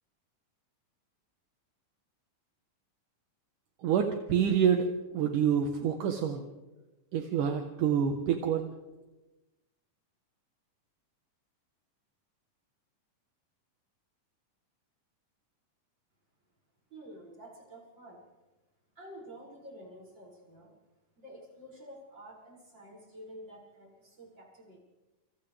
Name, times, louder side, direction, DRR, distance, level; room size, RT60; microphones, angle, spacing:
voice 1, 3.8-4.9 5.1-6.5 7.1-8.7, right 8 dB, 70° right, 3 dB, 2.9 m, -27 dB
voice 2, 16.9-18.2 19.0-20.7 21.2-24.8, equal, 30° right, -3 dB, 7.9 m, -50 dB
29.5 x 29.0 x 3.6 m, 1.1 s
omnidirectional pair, 3.8 m